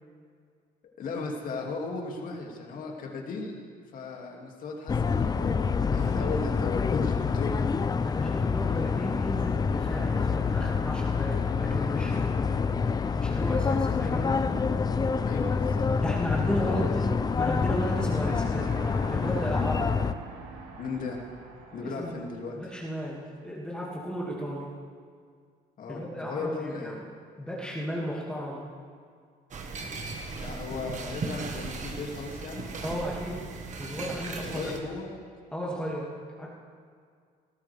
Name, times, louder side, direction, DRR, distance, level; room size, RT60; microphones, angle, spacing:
voice 1, 0.8-3.5 3.9-7.6 15.3-15.9 16.4-17.1 20.8-21.2 21.7-22.6 25.8-27.0 30.4-32.8 34.4-35.2, left 3 dB, 55° left, 0 dB, 2.5 m, -36 dB
sound 1, 4.9-20.1, left 5 dB, 25° left, 0.5 m, -27 dB
voice 2, 5.9-6.3 8.0-12.6 12.9-14.4 16.0-17.1 17.4-18.8 19.1-19.9 21.8-22.2 22.5-24.7 25.9-27.0 27.4-28.7 32.8-33.4 33.8-34.7 35.5-36.1 36.4-36.5, equal, 5° left, -5 dB, 2.3 m, -34 dB
sound 2, 17.3-22.8, right 4 dB, 90° right, 2.1 m, -45 dB
sound 3, 29.5-34.8, right 3 dB, 45° right, 1.6 m, -37 dB
19.0 x 14.0 x 3.5 m, 2.1 s
cardioid pair, 110°, 17 cm